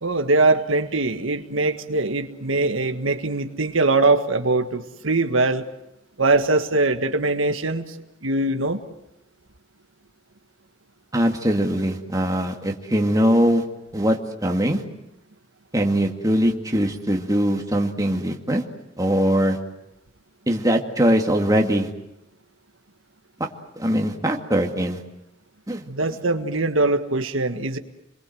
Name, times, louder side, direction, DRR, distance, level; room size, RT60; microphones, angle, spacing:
voice 1, 0.0-5.6 6.2-7.9 8.2-8.8 25.9-27.8, right 2 dB, 80° right, 7 dB, 1.7 m, -22 dB
voice 2, 11.1-13.6 13.9-14.8 15.7-18.6 19.0-19.6 20.5-21.9 23.8-25.0 25.7-25.8, equal, 15° right, 2 dB, 2.2 m, -21 dB
29.5 x 22.5 x 7.8 m, 0.88 s
head